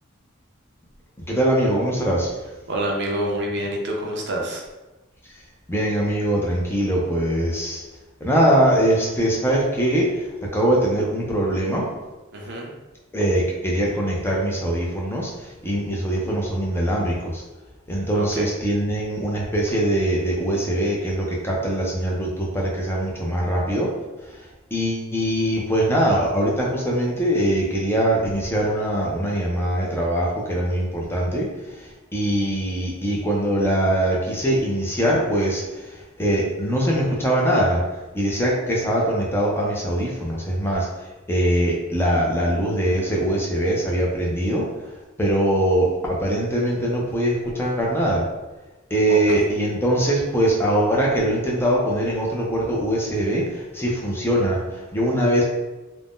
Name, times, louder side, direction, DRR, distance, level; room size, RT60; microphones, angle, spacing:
voice 1, 1.3-2.3 5.7-7.8 8.2-11.9 13.1-17.4 17.9-23.9 24.3-40.9 41.3-44.7 45.2-48.2 48.9-55.4, right 1 dB, 10° left, -3 dB, 0.5 m, -22 dB
voice 2, 2.7-4.6 12.3-12.7 18.1-18.5 49.1-49.4, right 1 dB, 55° right, 0 dB, 0.5 m, -27 dB
2.5 x 2.1 x 3.5 m, 1.1 s
head